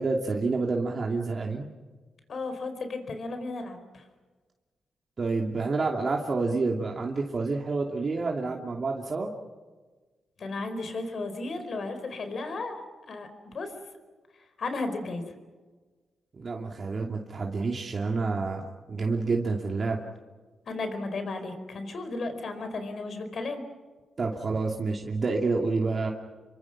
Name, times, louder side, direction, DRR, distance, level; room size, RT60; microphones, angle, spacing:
voice 1, 0.0-1.7 5.2-9.3 16.4-20.0 24.2-26.1, right 3 dB, 45° right, 0 dB, 2.7 m, -28 dB
voice 2, 2.3-4.0 10.4-12.8 13.1-13.7 14.6-15.3 20.7-23.6, left 3 dB, 60° left, 8 dB, 4.8 m, -34 dB
30.0 x 24.0 x 6.1 m, 1.3 s
cardioid pair, 80°, 0 cm